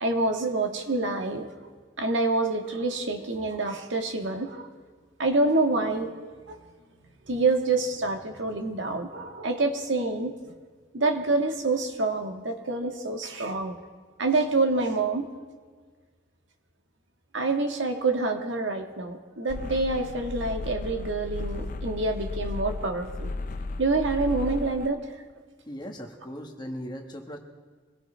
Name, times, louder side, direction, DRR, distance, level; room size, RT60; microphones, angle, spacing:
voice 1, 0.0-1.5 2.0-4.7 5.2-6.1 6.5-6.6 7.3-10.3 10.9-13.8 14.2-15.3 17.3-23.3 23.8-25.0, right 3 dB, 75° right, 4 dB, 1.6 m, -27 dB
sound 1, 19.5-24.9, left 3 dB, 45° left, 0.5 m, -34 dB
voice 2, 25.7-27.4, equal, 20° left, 2 dB, 1.5 m, -38 dB
24.5 x 17.0 x 3.3 m, 1.5 s
head